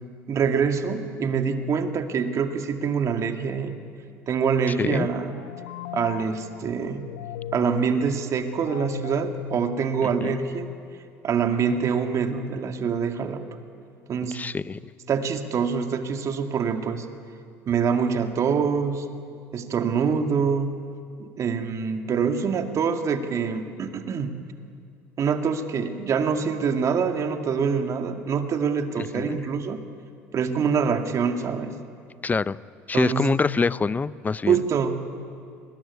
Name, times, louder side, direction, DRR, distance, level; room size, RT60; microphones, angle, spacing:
voice 1, 0.3-3.7 4.3-5.4 5.9-7.1 7.5-10.7 11.2-13.4 14.1-14.4 15.1-17.1 17.7-19.1 19.5-20.7 21.2-24.3 25.2-29.8 30.3-31.8 32.9-33.3 34.5-35.0, right 6 dB, 50° right, 6 dB, 2.2 m, -25 dB
sound 1, 5.2-10.7, left 11 dB, 85° left, 0.8 m, -39 dB
voice 2, 14.3-14.8 29.1-29.4 32.2-32.6 32.9-34.6, left 4 dB, 25° left, 18 dB, 0.6 m, -25 dB
22.0 x 20.0 x 9.7 m, 2.4 s
hypercardioid pair, 70°, 7 cm